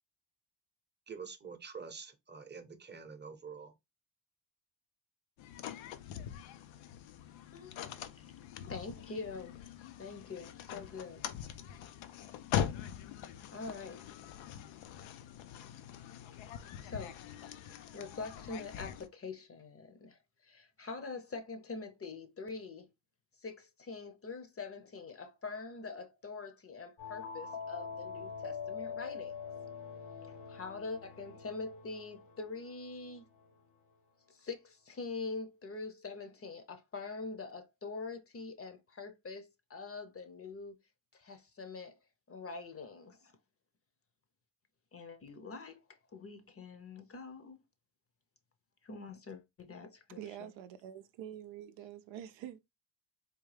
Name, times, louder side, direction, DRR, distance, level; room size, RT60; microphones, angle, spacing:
voice 1, 1.1-3.7, right 5 dB, 25° right, 0.7 m, -47 dB
sound 1, 5.4-19.1, left 9 dB, 90° left, 0.5 m, -42 dB
voice 2, 7.5-8.3 8.6-9.6 10.0-11.3 13.2-14.0 16.8-17.5 17.9-22.9 23.4-29.4 30.2-33.3 34.3-40.8 41.1-42.0 42.3-43.3 44.9-47.6 48.8-50.5, left 4 dB, 30° left, 0.7 m, -44 dB
sound 2, 27.0-33.5, left 6 dB, 65° left, 1.0 m, -44 dB
voice 3, 50.2-52.6, right 10 dB, 80° right, 0.5 m, -46 dB
3.7 x 2.3 x 3.2 m
cardioid pair, 75°, 45 cm